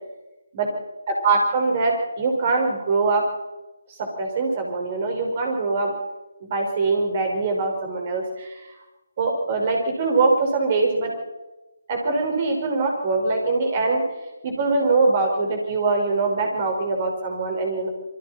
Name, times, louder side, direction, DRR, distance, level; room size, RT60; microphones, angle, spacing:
voice 1, 1.1-3.2 4.0-5.9 6.4-8.6 9.2-11.1 11.9-14.0 14.4-17.9, right 3 dB, 30° right, 2 dB, 5.6 m, -23 dB
27.5 x 24.0 x 4.5 m, 1.1 s
figure-of-eight pair, 150°, 0 cm